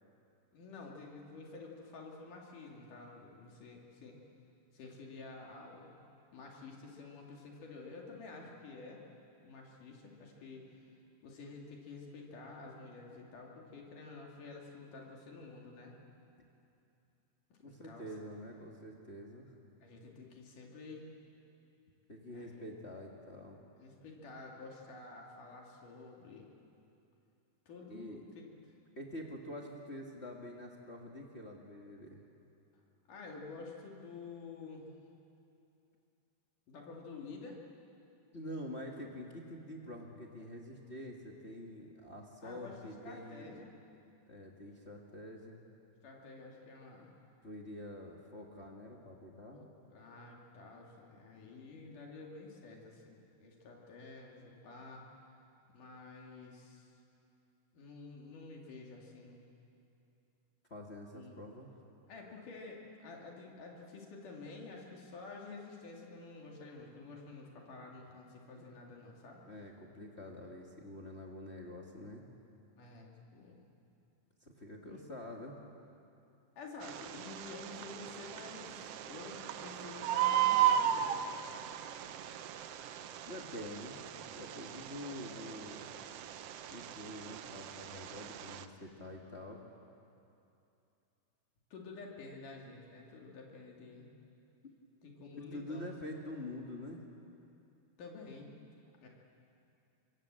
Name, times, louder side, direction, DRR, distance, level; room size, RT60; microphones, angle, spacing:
voice 1, 0.5-4.2 4.7-6.0 6.3-9.0 9.4-10.9 11.2-16.0 17.5-18.1 19.8-21.1 22.3-22.6 23.8-26.5 27.7-28.5 33.1-34.9 36.7-37.6 42.4-43.7 46.0-47.1 49.5-55.0 55.7-56.9 57.7-59.4 61.1-61.4 62.1-69.4 72.8-73.6 74.9-75.0 76.6-81.3 91.7-94.1 95.0-95.9 98.0-98.5 99.0-99.1, left 3 dB, 75° left, -1 dB, 4.1 m, -50 dB
voice 2, 17.6-19.5 22.1-23.6 27.9-28.2 28.9-32.2 38.3-43.6 44.3-45.6 47.4-49.6 60.7-61.7 69.4-72.2 74.4-75.6 83.2-85.9 86.7-89.6 95.4-97.0, left 1 dB, 30° left, 0 dB, 1.4 m, -46 dB
Bird, 76.8-88.6, right 10 dB, 75° right, 1.4 m, -36 dB
25.5 x 24.0 x 7.6 m, 2.7 s
omnidirectional pair, 3.7 m